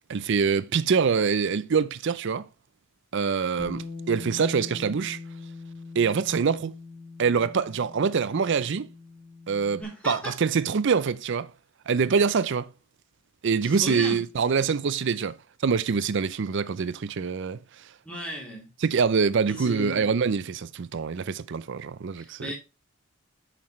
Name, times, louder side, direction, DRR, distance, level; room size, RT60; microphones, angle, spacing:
voice 1, 0.1-2.5 3.1-5.2 5.9-6.7 7.2-8.9 9.5-11.5 11.9-12.7 13.4-15.4 15.6-17.6 18.8-22.5, right 5 dB, 55° right, 0.4 m, -25 dB
Bass guitar, 3.6-9.8, left 3 dB, 40° left, 1.3 m, -42 dB
voice 2, 9.8-10.3 13.6-14.2 18.0-18.7 19.5-20.1 22.2-22.5, equal, 5° left, 3.0 m, -35 dB
8.6 x 5.9 x 3.1 m
head